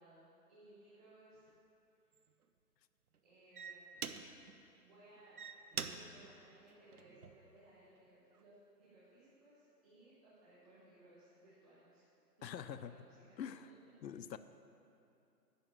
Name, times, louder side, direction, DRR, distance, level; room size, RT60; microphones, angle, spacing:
voice 1, 0.0-1.5 3.2-4.0 4.8-5.4 5.8-12.0 12.4-13.3 14.1-14.2, right 1 dB, 20° right, -11 dB, 1.6 m, -62 dB
sound 1, 1.4-1.5 2.1-2.4 3.1-3.2 3.5-4.6 5.2-7.5 8.1-8.4, right 6 dB, 60° right, 0.7 m, -46 dB
voice 2, 12.4-12.9 13.4-13.6 14.0-14.4, left 9 dB, 80° left, 12 dB, 0.6 m, -44 dB
10.5 x 5.0 x 7.3 m, 2.7 s
hypercardioid pair, 165°, 50 cm